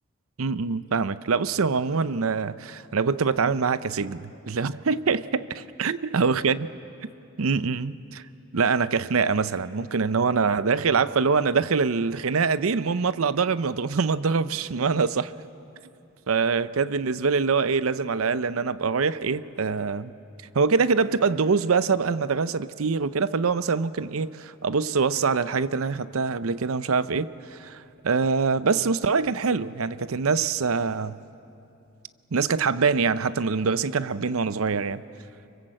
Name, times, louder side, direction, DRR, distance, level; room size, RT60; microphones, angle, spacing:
voice 1, 0.4-6.6 7.4-8.2 8.5-15.3 16.3-20.1 20.5-31.1 32.3-35.0, right 5 dB, 85° right, 0.6 m, -24 dB
25.5 x 24.0 x 7.7 m
head